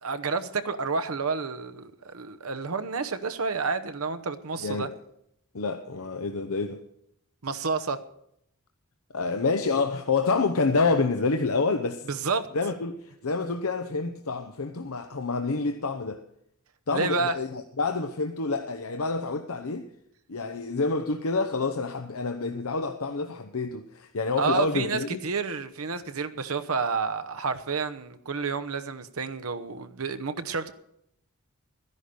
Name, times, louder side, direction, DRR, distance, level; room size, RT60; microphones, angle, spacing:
voice 1, 0.0-4.9 7.4-8.0 12.1-12.5 16.9-17.3 24.4-30.7, right 4 dB, 70° right, 1.0 m, -30 dB
voice 2, 4.6-4.9 5.5-6.8 9.1-12.1 12.5-16.2 16.9-19.9 20.3-25.2, left 4 dB, 75° left, 0.8 m, -28 dB
13.0 x 10.5 x 6.8 m
head